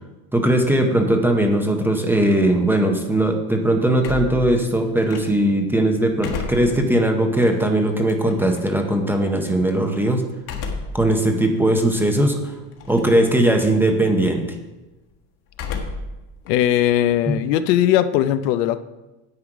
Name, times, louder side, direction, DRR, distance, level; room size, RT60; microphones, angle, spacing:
voice 1, 0.3-10.3 10.9-12.5 12.9-14.4 17.3-17.4, right 1 dB, 5° right, 3 dB, 0.7 m, -19 dB
sound 1, 4.0-5.6 6.0-8.6 10.4-11.1 11.6-11.7 12.7-13.2 13.5-13.9 15.5-16.2 16.5-17.9, left 4 dB, 45° left, 1.6 m, -33 dB
voice 2, 16.5-18.8, left 12 dB, 75° left, 12 dB, 0.8 m, -19 dB
9.8 x 7.8 x 4.9 m, 1.1 s
supercardioid pair, 150°, 50 cm